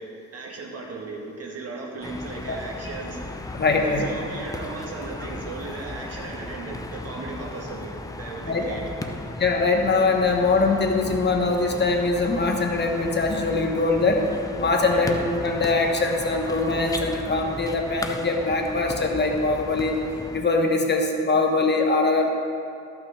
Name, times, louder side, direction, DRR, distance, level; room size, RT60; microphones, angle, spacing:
voice 1, 0.0-3.4 3.8-8.8 14.9-15.2, right 3 dB, 55° right, 0 dB, 1.7 m, -36 dB
sound 1, 2.0-20.4, left 2 dB, 10° left, 0.6 m, -36 dB
voice 2, 3.5-4.1 8.4-8.6 9.4-14.2 14.6-20.0 20.3-22.3, left 3 dB, 35° left, 2 dB, 1.1 m, -22 dB
13.5 x 5.9 x 4.3 m, 2.6 s
cardioid pair, 90°, 30 cm